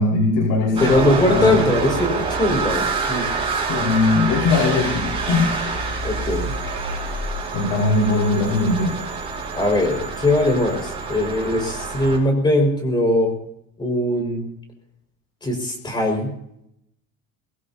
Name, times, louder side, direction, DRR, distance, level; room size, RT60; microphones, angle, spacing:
voice 1, 0.0-1.6 3.7-5.6 7.5-9.0, left 3 dB, 75° left, -1 dB, 5.2 m, -20 dB
voice 2, 0.8-3.3 6.0-6.5 9.5-13.3 13.8-14.5 15.4-16.3, left 1 dB, 15° left, 2 dB, 5.5 m, -20 dB
sound 1, 0.8-12.2, right 4 dB, 20° right, 6.0 m, -26 dB
24.5 x 20.0 x 2.9 m, 0.76 s
cardioid pair, 170°, 29 cm